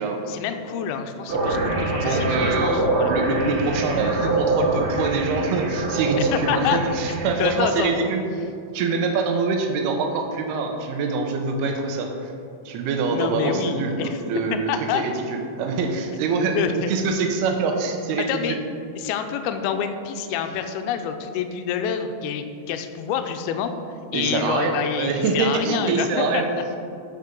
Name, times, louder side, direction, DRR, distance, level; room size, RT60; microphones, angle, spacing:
voice 1, 0.3-3.1 6.2-6.8 7.4-8.2 13.1-14.2 14.7-15.0 16.5-16.7 18.3-18.6 19.0-23.7 24.1-26.4, left 8 dB, 85° left, 7 dB, 2.5 m, -27 dB
sound 1, 1.3-7.8, right 2 dB, 70° right, 3.2 m, -25 dB
voice 2, 2.0-2.8 3.1-8.2 8.7-12.3 12.7-18.6 24.1-26.5, right 4 dB, 90° right, 3 dB, 2.9 m, -24 dB
12.5 x 5.1 x 5.3 m, 2.4 s
omnidirectional pair, 4.5 m